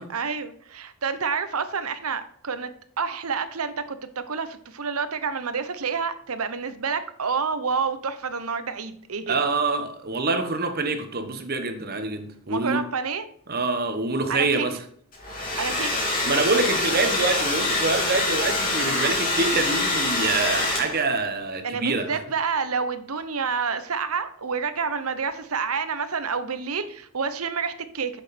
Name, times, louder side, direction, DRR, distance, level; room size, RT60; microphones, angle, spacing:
voice 1, 0.1-2.7 3.0-9.4 12.5-13.2 14.3-14.7 15.6-16.1 21.6-28.2, right 5 dB, 85° right, 0.9 m, -28 dB
voice 2, 9.3-12.8 13.5-14.8 16.2-22.2, right 3 dB, 45° right, 1.2 m, -25 dB
Domestic sounds home sounds, 15.1-21.2, left 2 dB, 40° left, 3.6 m, -25 dB
8.3 x 6.5 x 4.3 m
head